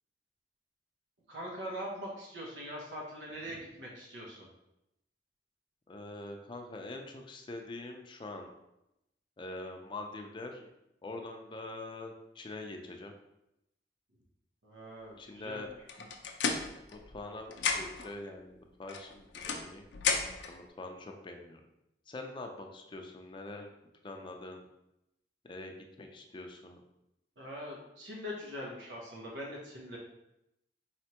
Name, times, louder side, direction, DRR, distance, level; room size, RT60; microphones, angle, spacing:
voice 1, 1.3-4.5 14.6-15.6 27.4-30.0, equal, 85° right, -3 dB, 0.9 m, -42 dB
voice 2, 5.9-8.5 9.4-10.7 11.0-13.1 15.2-15.7 16.9-19.9 20.5-21.6 22.1-23.7 24.0-24.7 25.4-26.8, left 2 dB, 25° left, 3 dB, 0.4 m, -44 dB
sound 1, 15.9-17.3 17.5-18.1 18.9-20.5, left 5 dB, 85° left, 0.5 m, -33 dB
4.2 x 3.3 x 2.9 m, 0.86 s
head